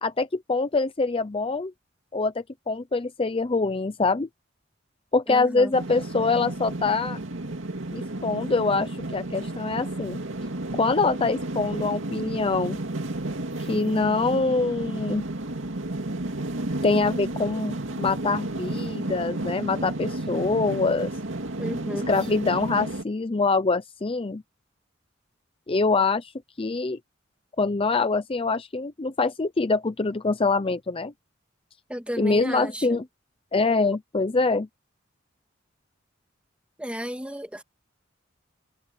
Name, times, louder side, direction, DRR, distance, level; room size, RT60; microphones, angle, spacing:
voice 1, 0.0-1.7 2.1-4.3 5.1-7.2 7.9-10.2 10.8-12.8 13.7-15.2 16.8-21.1 21.9-24.4 25.7-26.3 26.6-27.0 27.6-31.1 32.2-33.1 33.5-34.7, left 3 dB, 30° left, 0.6 m, -24 dB
voice 2, 5.3-5.7 21.6-22.1 31.9-33.0 36.8-37.6, equal, 5° right, 2.7 m, -33 dB
sound 1, 5.7-23.0, right 2 dB, 80° right, 2.3 m, -32 dB
head